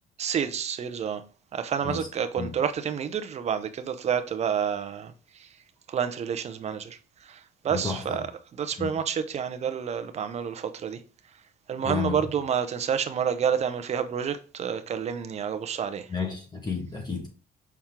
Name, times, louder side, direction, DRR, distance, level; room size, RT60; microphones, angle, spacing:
voice 1, 0.2-1.2 1.5-5.1 5.9-7.0 7.3-7.4 7.6-8.2 8.6-11.0 11.7-16.1, right 7 dB, 40° right, 0.7 m, -29 dB
voice 2, 7.7-8.2 8.8-8.9 11.8-12.3 16.1-17.3, left 5 dB, 25° left, 1.7 m, -32 dB
5.9 x 4.3 x 3.7 m
cardioid pair, 110°, 17 cm